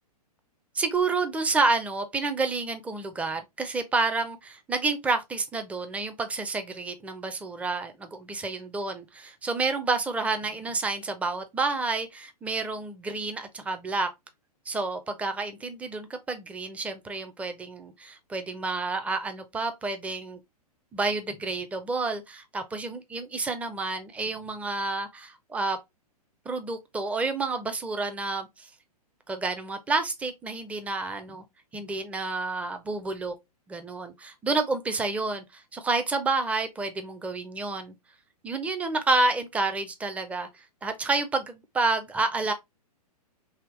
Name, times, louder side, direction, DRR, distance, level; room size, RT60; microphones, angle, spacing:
voice 1, 0.7-14.1 14.7-20.4 20.9-25.8 26.5-28.7 29.3-31.4 31.7-33.3 33.7-37.9 38.4-42.5, right 3 dB, 5° right, 0.5 m, -29 dB
3.5 x 2.8 x 3.1 m
hypercardioid pair, 120°, 20 cm